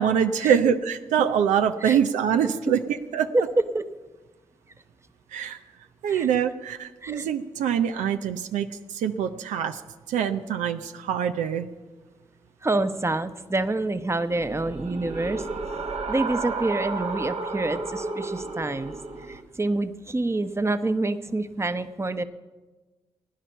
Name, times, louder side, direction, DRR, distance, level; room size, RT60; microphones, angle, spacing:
voice 1, 0.0-3.3 5.3-5.6 6.0-9.8 10.1-11.7, right 8 dB, 90° right, 8 dB, 0.5 m, -24 dB
voice 2, 12.6-15.5 16.1-18.9 19.3-22.2, right 2 dB, 20° right, 10 dB, 0.9 m, -27 dB
sound 1, 14.3-19.4, right 3 dB, 65° right, 1.4 m, -32 dB
16.5 x 10.0 x 5.6 m, 1.2 s
supercardioid pair, 40°, 12 cm